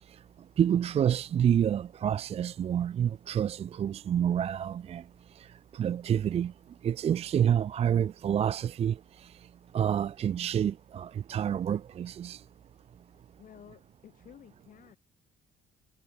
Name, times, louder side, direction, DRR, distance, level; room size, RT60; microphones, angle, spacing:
voice 1, 0.6-5.0 5.7-6.5 6.8-9.0 9.7-12.4, right 9 dB, 35° right, 0.4 m, -28 dB
voice 2, 13.4-15.0, left 9 dB, 50° left, 6.2 m, -53 dB
cardioid pair, 110°, 17 cm